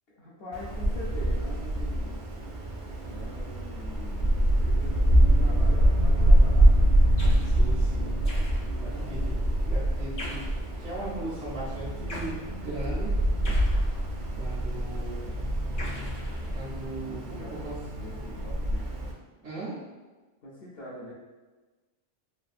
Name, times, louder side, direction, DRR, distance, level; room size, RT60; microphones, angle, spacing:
voice 1, 0.2-2.2 3.1-6.9 8.6-9.2 17.0-18.9 20.4-21.1, left 1 dB, 60° left, -8 dB, 0.8 m, -44 dB
Wind, 0.5-19.1, right 1 dB, 55° right, 0.5 m, -25 dB
sound 1, 7.2-7.6 8.2-8.9 10.2-10.7 12.1-12.4 13.4-14.3 15.8-16.8, left 1 dB, 85° left, 1.1 m, -41 dB
voice 2, 7.4-8.2 8.8-9.3 9.7-10.4 10.8-12.3 12.6-13.1 14.4-15.4 16.5-17.7 19.4-19.8, right 2 dB, 80° right, -7 dB, 1.2 m, -38 dB
3.3 x 2.3 x 2.4 m, 1.3 s
omnidirectional pair, 1.2 m